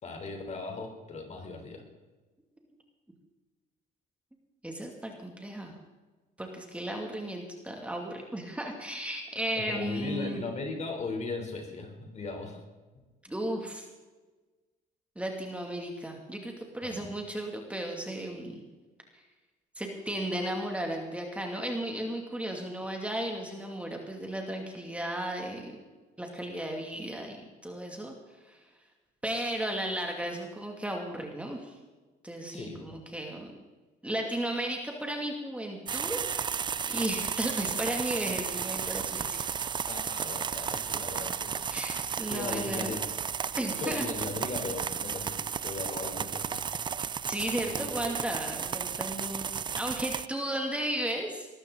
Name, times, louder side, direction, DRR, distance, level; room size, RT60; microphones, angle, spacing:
voice 1, 0.0-1.8 9.5-12.6 16.8-17.1 32.5-33.0 39.9-41.8 42.3-43.2 43.8-46.6 47.6-48.1, left 3 dB, 40° left, 4 dB, 3.6 m, -38 dB
voice 2, 4.6-5.8 6.4-10.4 13.2-13.8 15.2-18.6 19.8-25.8 26.2-28.1 28.4-28.6 29.2-31.8 32.2-33.6 34.0-36.4 36.8-39.4 41.7-43.0 43.6-44.1 47.3-49.5 49.8-51.5, right 1 dB, 5° right, 1 dB, 2.5 m, -35 dB
sound 1, 35.9-50.3, right 7 dB, 25° right, 0.4 m, -33 dB
20.5 x 13.5 x 3.9 m, 1.2 s
cardioid pair, 110°, 17 cm